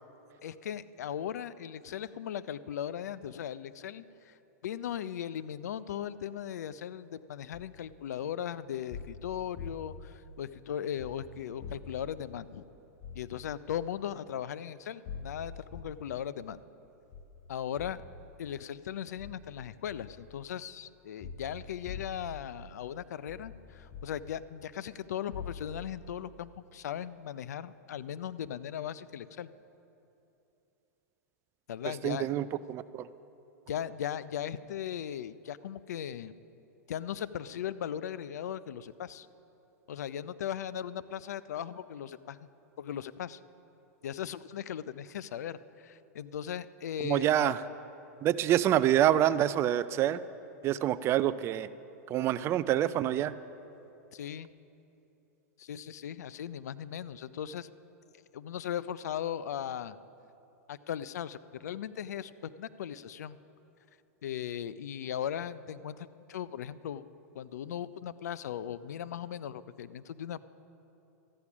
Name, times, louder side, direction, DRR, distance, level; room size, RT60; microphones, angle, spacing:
voice 1, 0.4-4.3 4.6-12.7 13.2-16.6 17.5-18.0 18.4-29.5 31.7-32.3 33.7-36.3 36.9-39.3 39.9-42.4 42.8-43.4 44.0-47.5 54.1-54.5 55.6-57.7 58.3-60.0 60.7-63.4 64.2-67.0 67.3-70.4, left 9 dB, 80° left, 16 dB, 0.4 m, -38 dB
sound 1, 7.5-7.7 8.9-10.0 10.9-11.2 11.6-12.1 13.0-13.3 13.7-13.9 15.1-16.0 17.1-17.4 17.7-18.0 19.2-19.5 19.8-20.2 21.2-22.4 23.3-24.2 25.3-25.8, left 6 dB, 45° left, 1.2 m, -44 dB
voice 2, 31.8-33.1 47.0-47.6 48.2-50.2 50.6-51.7 52.1-53.3, right 12 dB, 30° right, 15 dB, 0.3 m, -27 dB
13.5 x 9.8 x 6.0 m, 2.9 s
hypercardioid pair, 125°, 9 cm